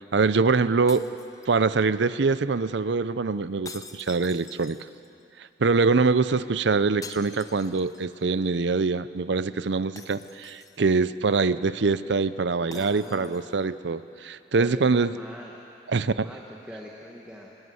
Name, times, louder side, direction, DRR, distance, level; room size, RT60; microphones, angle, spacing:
voice 1, 0.1-1.1 1.5-4.8 5.6-15.1 15.9-16.3, right 4 dB, 70° right, 15 dB, 0.6 m, -24 dB
sound 1, 0.9-2.0 3.6-5.2 7.0-8.2 8.5-8.6 10.0-11.0 12.7-13.6, left 5 dB, 20° left, 0.9 m, -46 dB
voice 2, 12.7-13.4 14.6-15.5 16.0-17.5, equal, 5° right, -2 dB, 1.6 m, -43 dB
25.0 x 19.5 x 7.9 m, 2.7 s
head